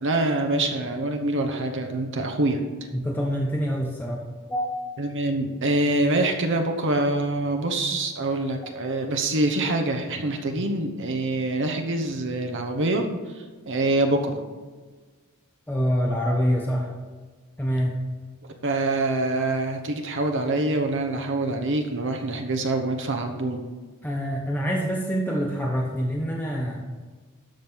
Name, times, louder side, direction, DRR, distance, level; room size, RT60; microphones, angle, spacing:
voice 1, 0.0-2.6 5.0-14.4 18.6-23.6, right 2 dB, 60° right, 3 dB, 1.0 m, -25 dB
voice 2, 2.9-4.2 4.5-4.7 10.5-10.6 15.7-16.9 17.6-18.0 24.0-26.8, equal, 10° left, -2 dB, 1.0 m, -26 dB
13.0 x 5.3 x 6.1 m, 1.4 s
head